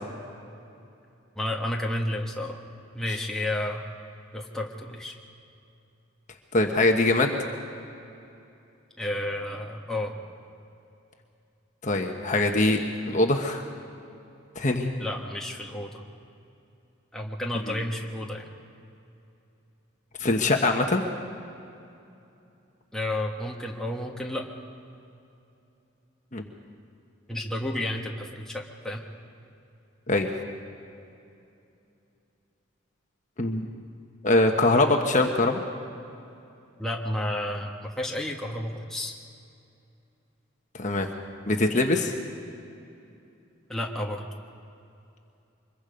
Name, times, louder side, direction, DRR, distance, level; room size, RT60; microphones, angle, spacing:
voice 1, 1.3-2.6 2.9-3.8 4.3-5.1 9.0-10.2 15.0-16.0 17.1-18.5 22.9-24.5 27.3-29.0 36.8-39.1 43.7-44.3, left 1 dB, 5° left, -1 dB, 1.5 m, -31 dB
voice 2, 6.5-7.3 11.8-12.8 13.1-13.6 14.5-14.9 17.7-17.8 20.2-21.0 26.3-26.4 30.1-30.3 33.4-33.7 34.2-35.6 40.7-41.1 41.5-42.1, left 2 dB, 35° left, 3 dB, 1.2 m, -23 dB
24.5 x 22.0 x 5.2 m, 2.7 s
head